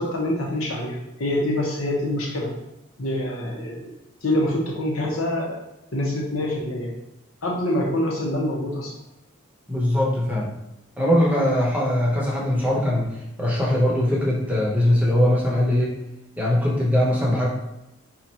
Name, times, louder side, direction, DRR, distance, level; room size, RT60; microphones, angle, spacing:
voice 1, 0.0-2.5 3.0-3.9 4.2-5.6 5.9-6.9 7.4-8.9 17.1-17.2, left 1 dB, 90° left, -1 dB, 1.1 m, -25 dB
voice 2, 9.7-10.5 11.0-13.1 13.4-16.0 16.4-17.5, left 1 dB, 5° right, -3 dB, 0.9 m, -21 dB
4.3 x 2.5 x 4.3 m, 0.92 s
head